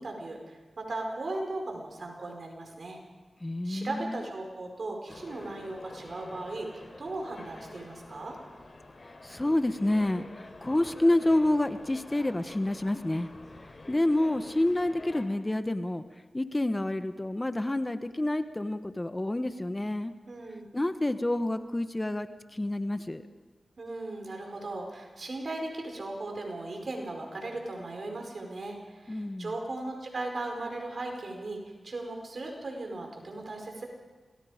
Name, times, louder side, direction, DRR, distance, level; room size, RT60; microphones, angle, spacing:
voice 1, 0.0-3.0 3.6-8.4 20.3-20.7 23.8-33.9, right 2 dB, 65° right, 2 dB, 5.0 m, -37 dB
voice 2, 3.4-4.2 9.2-13.3 13.9-16.0 16.3-20.1 20.7-23.2 29.1-29.5, left 1 dB, 25° left, 10 dB, 1.1 m, -28 dB
sound 1, 5.1-15.3, left 2 dB, 55° left, 4.2 m, -48 dB
27.0 x 19.5 x 5.1 m, 1.3 s
cardioid pair, 45°, 0 cm